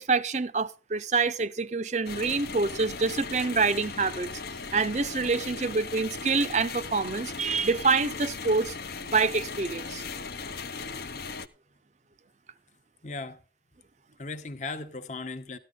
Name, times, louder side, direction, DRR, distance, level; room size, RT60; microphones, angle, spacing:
voice 1, 0.0-4.3 4.7-8.8 9.1-10.0, right 4 dB, 40° right, 0.6 m, -26 dB
sound 1, 2.0-11.5, left 4 dB, 60° left, 0.8 m, -38 dB
voice 2, 13.0-13.4 14.2-15.6, left 3 dB, 45° left, 1.0 m, -39 dB
14.0 x 11.0 x 3.8 m
head